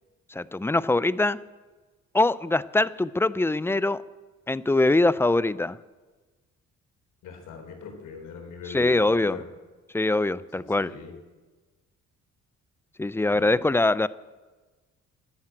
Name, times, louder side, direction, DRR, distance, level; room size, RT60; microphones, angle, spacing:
voice 1, 0.3-1.4 2.1-4.0 4.5-5.8 8.7-9.4 9.9-10.9 13.0-14.1, left 2 dB, 10° left, 17 dB, 0.5 m, -23 dB
voice 2, 7.2-9.5 10.6-11.1 13.3-13.6, left 5 dB, 85° left, 3 dB, 3.9 m, -41 dB
12.5 x 12.0 x 8.9 m, 1.3 s
cardioid pair, 90°, 30 cm